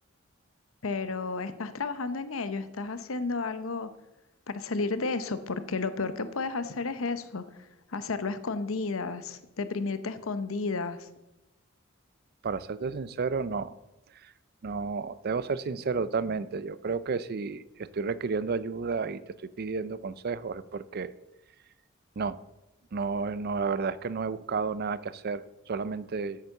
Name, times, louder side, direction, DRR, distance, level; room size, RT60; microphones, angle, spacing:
voice 1, 0.8-3.9 4.5-11.1, left 3 dB, 80° left, 12 dB, 0.8 m, -32 dB
voice 2, 12.4-13.7 14.2-14.3 14.6-19.2 19.6-21.1 22.2-22.4 22.9-26.4, right 4 dB, 50° right, 17 dB, 0.5 m, -31 dB
8.6 x 8.2 x 6.5 m, 0.97 s
head